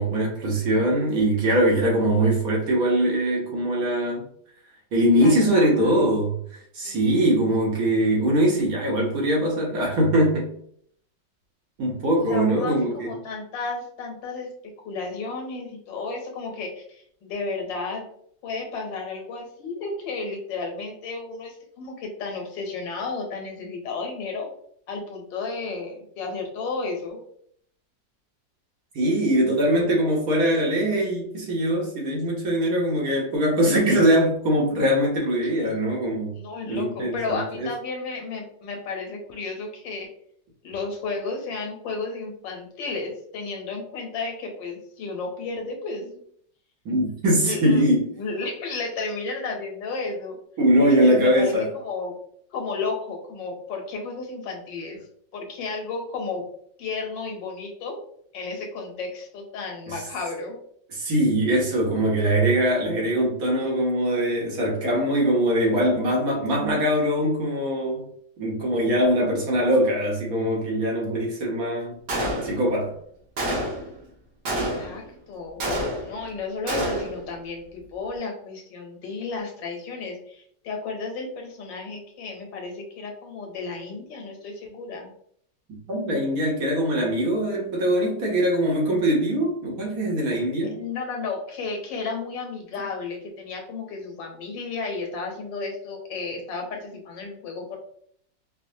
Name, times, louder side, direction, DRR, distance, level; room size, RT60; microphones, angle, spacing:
voice 1, 0.0-4.3 4.9-10.5 11.8-13.2 28.9-36.3 36.6-37.7 46.8-48.0 50.6-51.7 60.9-68.1 68.4-72.0 72.4-73.0 85.9-90.8, right 1 dB, 60° right, -2 dB, 1.2 m, -22 dB
voice 2, 5.1-5.9 6.8-7.2 12.2-14.5 14.8-18.1 18.4-24.5 24.9-27.2 35.6-35.8 36.3-40.1 40.6-46.2 47.4-47.8 48.2-50.4 50.8-52.1 52.5-55.0 55.3-56.4 56.8-58.0 58.3-60.6 74.5-75.6 76.0-85.1 90.7-97.8, left 3 dB, 85° left, 1 dB, 1.5 m, -33 dB
Gunshot gunfire, 72.1-72.8 73.4-73.9 74.4-75.1 75.6-76.3 76.7-77.2, right 1 dB, 80° right, 1.7 m, -28 dB
4.9 x 2.1 x 2.6 m, 0.66 s
omnidirectional pair, 1.9 m